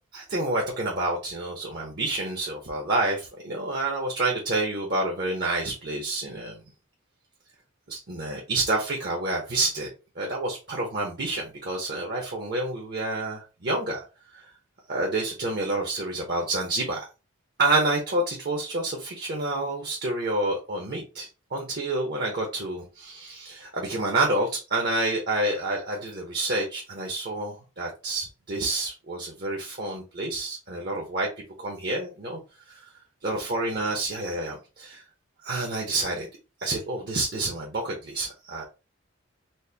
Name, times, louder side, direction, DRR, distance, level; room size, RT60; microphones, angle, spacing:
voice 1, 0.1-6.6 7.9-9.9 10.2-14.0 14.3-14.4 14.9-17.1 17.6-31.3 31.6-32.4 32.7-32.8 33.2-35.0 35.4-36.3 36.6-38.6, right 2 dB, 50° right, 0 dB, 0.7 m, -28 dB
4.2 x 2.1 x 3.3 m, 0.31 s
head